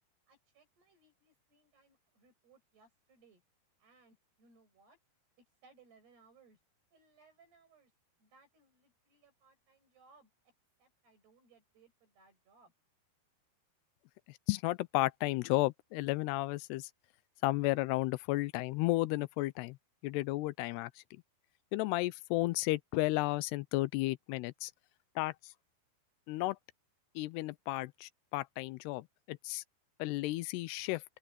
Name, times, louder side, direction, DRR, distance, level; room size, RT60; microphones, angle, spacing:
voice 1, 0.3-3.4 3.8-5.0 5.4-6.6 6.9-7.9 8.2-10.3 10.8-12.7, right 4 dB, 75° right, 10.0 m, -65 dB
voice 2, 14.5-16.9 17.4-19.8 20.0-20.9 21.7-24.7 25.2-25.3 26.3-26.6 27.2-29.6 30.0-31.0, left 19 dB, 90° left, 2.8 m, -33 dB
open air
omnidirectional pair, 4.6 m